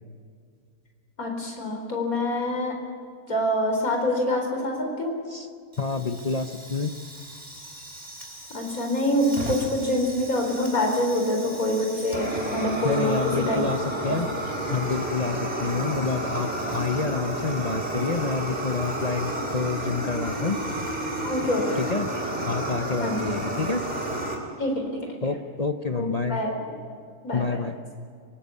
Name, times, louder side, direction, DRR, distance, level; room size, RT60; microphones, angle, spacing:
voice 1, 1.2-2.7 3.3-5.1 8.5-13.1 13.5-13.6 14.1-14.2 21.2-21.8 23.0-23.2 24.6-25.1 26.0-26.5 27.2-27.6, left 1 dB, 90° left, 2 dB, 4.8 m, -26 dB
Fire, 5.7-24.3, right 1 dB, 30° right, 3.8 m, -32 dB
voice 2, 5.8-6.9 12.8-14.3 14.7-20.6 21.7-22.1 22.4-23.8 25.2-26.4 27.3-27.8, left 4 dB, 35° left, 8 dB, 0.8 m, -28 dB
24.0 x 19.0 x 8.4 m, 2.2 s
omnidirectional pair, 1.5 m